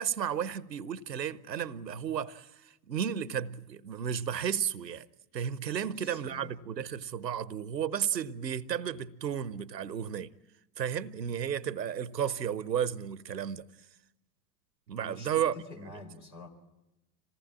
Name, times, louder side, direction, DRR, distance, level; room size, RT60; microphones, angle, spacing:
voice 1, 0.0-5.1 5.3-10.3 10.8-13.7 14.9-15.6, right 8 dB, 85° right, 0.9 m, -33 dB
voice 2, 5.8-6.5 15.0-16.5, left 2 dB, 85° left, 4.3 m, -48 dB
26.5 x 18.5 x 8.8 m
figure-of-eight pair, 75°, 49 cm